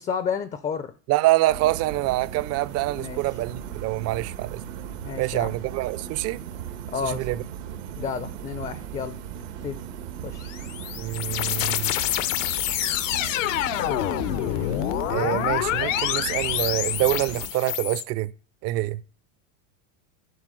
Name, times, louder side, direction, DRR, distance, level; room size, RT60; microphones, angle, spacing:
voice 1, 0.0-0.9 3.0-3.4 5.0-5.6 6.9-7.3 8.0-9.2 9.6-9.8 10.2-10.5, left 6 dB, 20° left, 0.5 m, -31 dB
voice 2, 1.1-4.6 5.2-6.4 7.0-7.4 11.0-11.9 12.8-12.9 15.1-18.3 18.6-19.0, right 17 dB, 40° right, 0.6 m, -26 dB
sound 1, 1.5-17.5, right 9 dB, 85° right, 1.6 m, -37 dB
sound 2, 10.4-18.0, left 14 dB, 75° left, 0.9 m, -27 dB
11.0 x 4.6 x 7.6 m
supercardioid pair, 130°, 39 cm